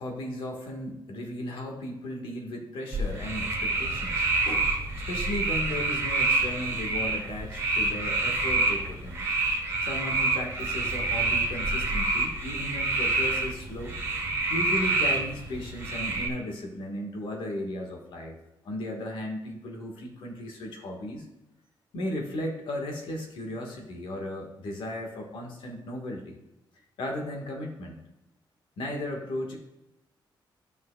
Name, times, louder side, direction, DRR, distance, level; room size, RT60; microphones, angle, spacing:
voice 1, 0.0-4.6 5.1-9.3 9.8-14.0 14.5-18.4 18.6-21.2 21.9-26.4 27.0-28.0 28.8-29.6, left 1 dB, 90° left, 1 dB, 1.7 m, -35 dB
sound 1, 2.9-16.3, right 3 dB, 30° right, 1.5 m, -27 dB
12.5 x 5.7 x 2.4 m, 0.91 s
wide cardioid pair, 170°, 9 cm